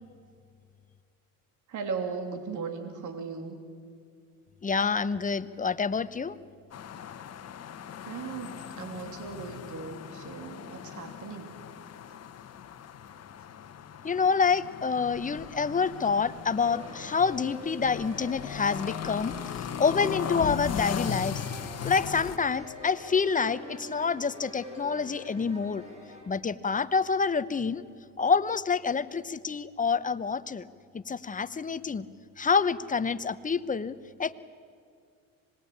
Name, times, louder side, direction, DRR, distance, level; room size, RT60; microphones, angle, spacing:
voice 1, 1.7-3.6 8.0-11.6, right 5 dB, 55° right, 5 dB, 3.2 m, -37 dB
voice 2, 4.6-6.4 14.0-19.3 19.8-21.4 21.8-25.8 26.3-27.8 28.2-30.7 30.9-32.1 32.4-34.3, left 5 dB, 20° left, 14 dB, 0.9 m, -27 dB
sound 1, 6.7-22.4, left 8 dB, 45° left, 1.3 m, -38 dB
sound 2, 16.6-26.2, left 1 dB, 20° right, 6.8 m, -45 dB
26.0 x 20.5 x 8.8 m, 2.3 s
supercardioid pair, 90°, 36 cm